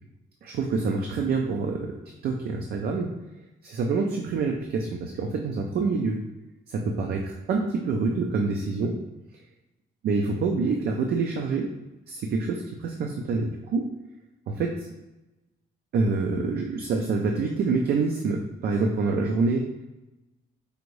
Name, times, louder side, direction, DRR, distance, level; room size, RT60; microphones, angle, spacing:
voice 1, 0.4-1.9 2.2-3.1 3.6-6.2 6.7-9.0 10.0-11.6 12.1-13.9 14.5-14.9 15.9-19.6, right 4 dB, 70° right, 2 dB, 0.5 m, -26 dB
4.9 x 2.6 x 3.1 m, 1.0 s
cardioid pair, 115°, 17 cm